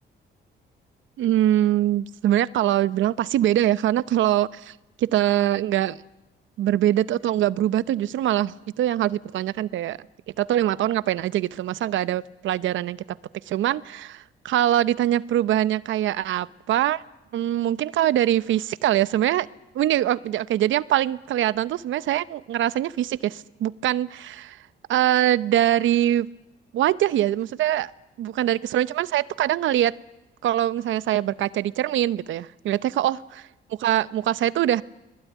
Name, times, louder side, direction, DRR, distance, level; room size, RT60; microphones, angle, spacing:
voice 1, 1.2-6.0 6.6-10.0 10.4-13.2 13.5-17.0 17.3-19.5 19.7-24.6 24.9-26.3 26.7-27.9 28.2-29.9 30.4-33.2 33.8-34.8, right 12 dB, 75° right, 16 dB, 0.8 m, -23 dB
25.0 x 20.0 x 9.4 m, 0.98 s
cardioid pair, 90°, 20 cm